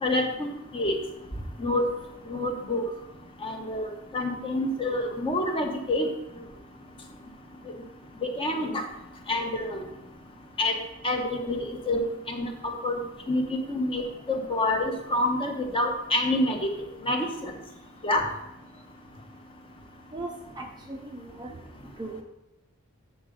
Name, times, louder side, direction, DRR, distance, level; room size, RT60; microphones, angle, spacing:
voice 1, 0.0-0.9 1.6-1.8 2.3-2.9 3.4-6.1 8.2-8.9 9.3-9.8 10.6-10.8 11.0-13.0 13.3-14.0 14.3-16.7 17.0-17.5 18.0-18.3, left 1 dB, 25° left, 3 dB, 0.9 m, -27 dB
voice 2, 20.1-21.5 22.0-22.2, right 2 dB, 20° right, 2 dB, 0.6 m, -38 dB
7.9 x 3.8 x 6.5 m, 0.88 s
head